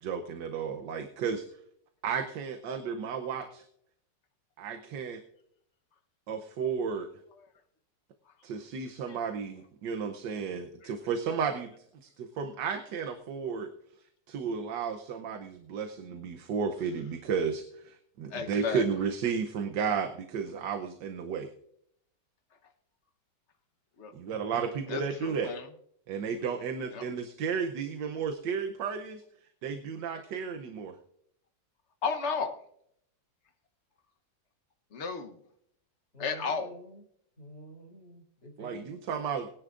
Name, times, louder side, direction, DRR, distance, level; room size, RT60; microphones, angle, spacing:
voice 1, 0.0-1.4 2.0-3.6 4.6-5.2 6.3-7.1 8.4-11.7 12.0-13.7 14.3-21.5 24.1-25.5 26.1-29.2 29.6-31.0 38.6-39.5, right 6 dB, 75° right, 6 dB, 1.5 m, -33 dB
voice 2, 18.3-18.8 24.0-24.1 24.9-25.6 26.9-27.0 32.0-32.6 34.9-35.4 36.2-36.8, left 5 dB, 45° left, 4 dB, 1.2 m, -33 dB
voice 3, 36.1-37.0 37.4-38.9, equal, 65° left, 0 dB, 3.3 m, -49 dB
22.0 x 10.0 x 2.5 m, 0.70 s
omnidirectional pair, 1.9 m